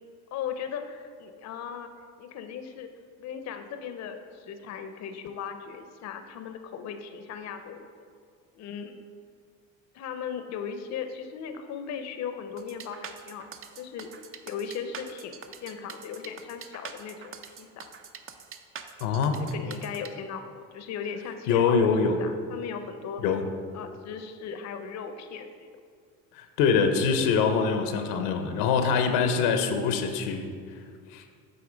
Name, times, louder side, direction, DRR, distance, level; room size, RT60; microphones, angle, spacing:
voice 1, 0.3-1.9 2.2-2.9 3.2-7.9 8.6-9.0 9.9-13.5 13.8-14.1 14.5-17.8 19.4-23.2 23.7-25.7, left 7 dB, 45° left, 7 dB, 0.6 m, -37 dB
sound 1, 12.6-20.1, right 7 dB, 35° right, 0.5 m, -43 dB
voice 2, 19.0-19.4 21.5-22.2 23.2-23.4 26.4-30.5 31.1-31.2, left 6 dB, 80° left, 6 dB, 0.7 m, -24 dB
7.9 x 3.0 x 5.0 m, 2.1 s
supercardioid pair, 85°, 38 cm